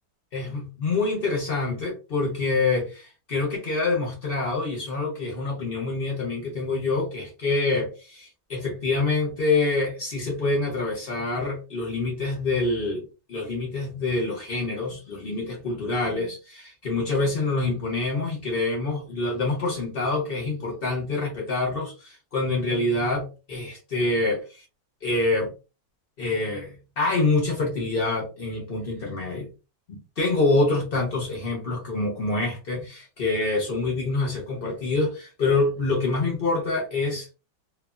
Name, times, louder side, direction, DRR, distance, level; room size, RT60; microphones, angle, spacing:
voice 1, 0.3-13.0 13.3-24.6 25.0-25.5 26.2-29.5 29.9-37.3, left 3 dB, 50° left, 0.6 m, -26 dB
3.3 x 2.2 x 2.4 m
omnidirectional pair, 2.0 m